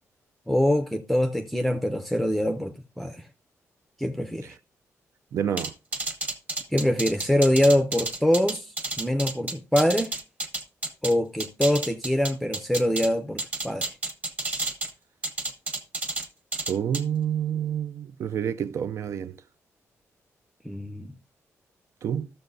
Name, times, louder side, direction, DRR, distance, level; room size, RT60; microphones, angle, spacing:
voice 1, 0.5-3.3 4.0-4.6 6.7-10.1 11.0-13.9 20.6-21.2, left 1 dB, ahead, 0.5 m, -24 dB
voice 2, 5.3-5.7 16.7-19.4 22.0-22.3, right 9 dB, 60° right, 0.4 m, -28 dB
sound 1, 5.6-11.1 11.4-13.1 13.4-14.9 15.2-16.3 16.5-17.0, right 2 dB, 25° right, 1.3 m, -30 dB
14.5 x 6.6 x 2.6 m
wide cardioid pair, 140°, 5 cm